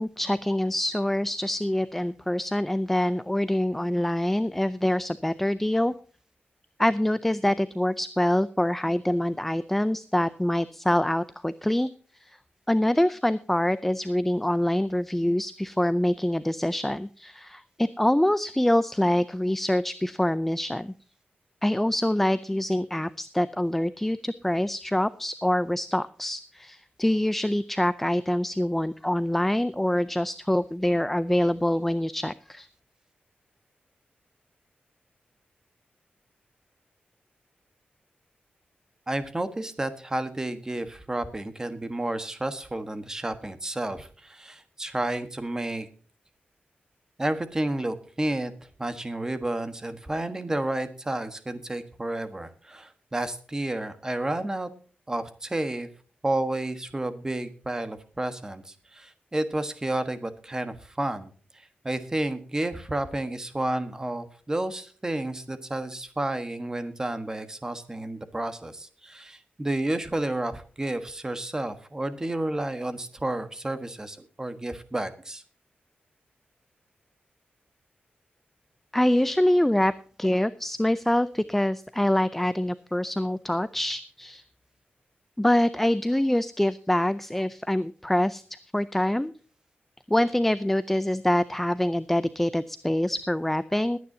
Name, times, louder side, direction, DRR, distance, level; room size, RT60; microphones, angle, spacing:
voice 1, 0.0-5.9 6.8-11.9 12.2-12.4 12.7-20.9 21.6-32.7 78.9-79.9 80.2-84.4 85.4-88.4 88.7-89.3 90.1-94.0, left 1 dB, 5° left, 14 dB, 0.4 m, -25 dB
voice 2, 39.1-45.9 47.2-48.5 48.8-54.7 55.1-55.9 56.2-75.4, right 1 dB, 15° right, 10 dB, 1.3 m, -31 dB
21.0 x 9.5 x 2.7 m, 0.41 s
wide cardioid pair, 140°, 4 cm